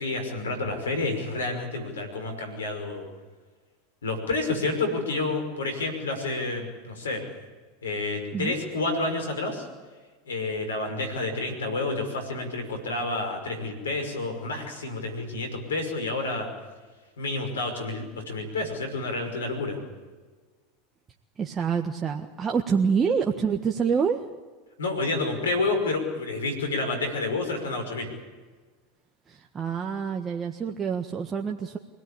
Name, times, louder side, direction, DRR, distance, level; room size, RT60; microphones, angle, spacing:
voice 1, 0.0-3.0 4.0-7.2 7.8-9.7 10.3-16.5 17.2-19.8 24.8-28.1, left 3 dB, 85° left, 5 dB, 5.7 m, -29 dB
voice 2, 21.4-24.2 29.3-31.8, right 6 dB, 25° right, 2 dB, 1.6 m, -26 dB
25.0 x 17.5 x 8.8 m, 1.4 s
hypercardioid pair, 90°, 0 cm